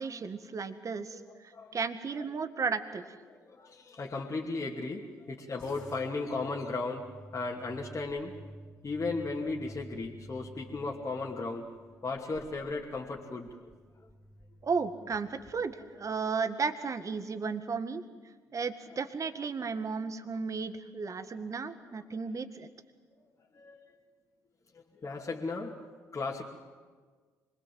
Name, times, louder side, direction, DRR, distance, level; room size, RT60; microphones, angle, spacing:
voice 1, 0.0-3.2 14.6-18.0 18.5-22.7, right 5 dB, 40° right, 10 dB, 1.8 m, -34 dB
voice 2, 3.5-7.0 7.3-8.3 8.8-11.7 12.0-13.6 21.1-21.3 23.5-24.0 24.7-26.5, left 3 dB, 35° left, -3 dB, 2.7 m, -36 dB
sound 1, 5.6-16.2, equal, 5° left, 3.8 m, -52 dB
25.0 x 21.0 x 7.9 m, 1.5 s
hypercardioid pair, 45°, 8 cm